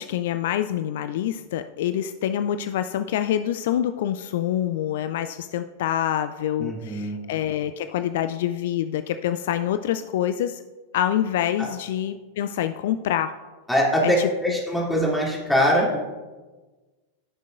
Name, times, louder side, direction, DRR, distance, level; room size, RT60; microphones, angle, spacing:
voice 1, 0.0-10.6 10.9-13.3 14.0-14.6, left 11 dB, 55° left, 10 dB, 0.3 m, -26 dB
voice 2, 6.6-7.2 13.7-16.0, equal, 5° left, -5 dB, 2.7 m, -22 dB
15.5 x 6.4 x 2.6 m, 1.3 s
figure-of-eight pair, 90°, 0 cm